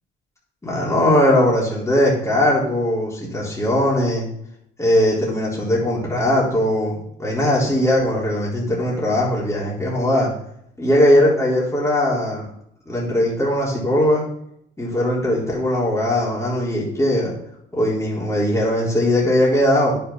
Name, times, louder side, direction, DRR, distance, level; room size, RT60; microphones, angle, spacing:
voice 1, 0.6-4.3 4.8-10.3 10.8-12.5 12.9-14.2 14.8-17.3 17.7-19.9, left 1 dB, 15° left, -5 dB, 3.6 m, -19 dB
9.4 x 5.8 x 5.7 m, 0.73 s
cardioid pair, 90°, 20 cm